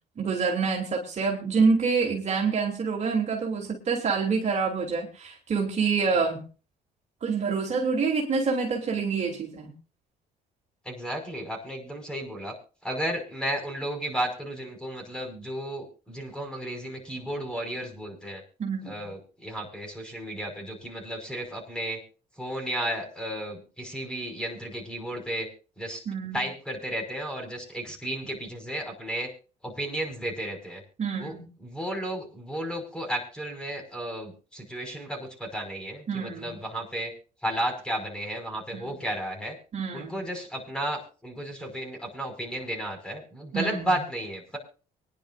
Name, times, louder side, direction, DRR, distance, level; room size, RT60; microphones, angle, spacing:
voice 1, 0.2-6.4 7.2-9.7 18.6-19.0 26.0-26.4 31.0-31.5 36.1-36.6 38.7-39.0 39.7-40.2 43.5-44.0, right 5 dB, 40° right, 0 dB, 3.2 m, -27 dB
voice 2, 10.9-12.5 12.8-18.4 18.8-22.0 22.4-25.5 25.8-26.0 26.3-29.3 29.6-30.8 31.2-31.3 31.6-37.1 37.4-39.5 39.9-44.6, right 1 dB, 5° left, 3 dB, 5.6 m, -33 dB
25.0 x 10.5 x 2.6 m, 0.36 s
cardioid pair, 110°, 17 cm